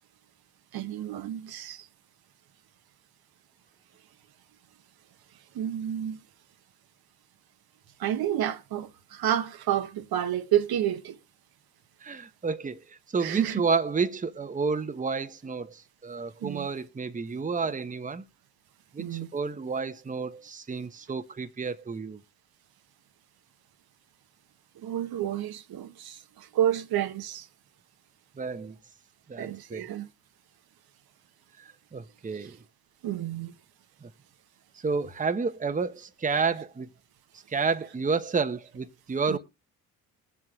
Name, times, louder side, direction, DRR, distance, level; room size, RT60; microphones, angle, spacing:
voice 1, 0.7-1.9 5.5-6.2 8.0-11.2 13.2-13.6 16.4-16.7 19.0-19.3 24.8-27.5 29.4-30.1 33.0-33.5 39.3-39.4, right 11 dB, 55° right, 1.1 m, -30 dB
voice 2, 12.0-18.2 18.9-22.2 28.4-28.7 29.3-29.9 31.6-32.6 34.0-34.1 34.8-36.9 37.5-39.4, right 4 dB, 15° right, 1.0 m, -30 dB
21.5 x 7.9 x 2.4 m
hypercardioid pair, 50°, 45 cm